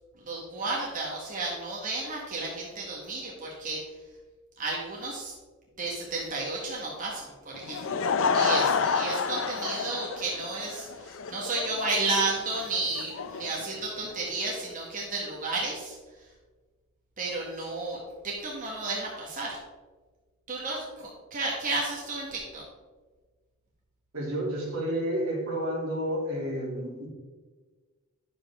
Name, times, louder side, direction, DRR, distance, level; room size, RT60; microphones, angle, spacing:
voice 1, 0.2-3.9 4.6-5.3 5.8-8.0 8.3-16.2 17.2-19.6 20.5-22.7, right 3 dB, 40° right, -3 dB, 1.5 m, -32 dB
Laughter / Crowd, 7.5-14.5, left 5 dB, 60° left, 0.5 m, -30 dB
voice 2, 24.1-27.1, equal, 75° right, -3 dB, 2.7 m, -30 dB
10.5 x 7.2 x 3.6 m, 1.4 s
head